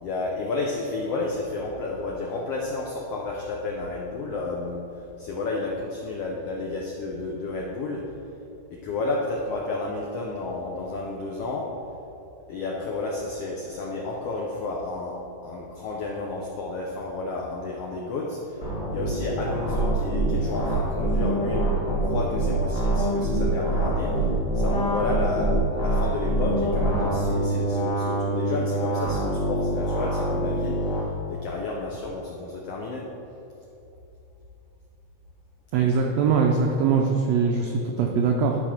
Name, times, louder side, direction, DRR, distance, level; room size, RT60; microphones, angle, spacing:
voice 1, 0.0-8.0 8.7-11.7 12.5-15.2 15.4-24.3 24.5-33.1, left 3 dB, 80° left, -1 dB, 1.3 m, -31 dB
sound 1, 18.6-31.0, right 1 dB, 45° left, 1.0 m, -25 dB
voice 2, 35.7-38.6, right 5 dB, 85° right, 1 dB, 1.5 m, -22 dB
11.5 x 4.2 x 5.9 m, 2.8 s
omnidirectional pair, 3.8 m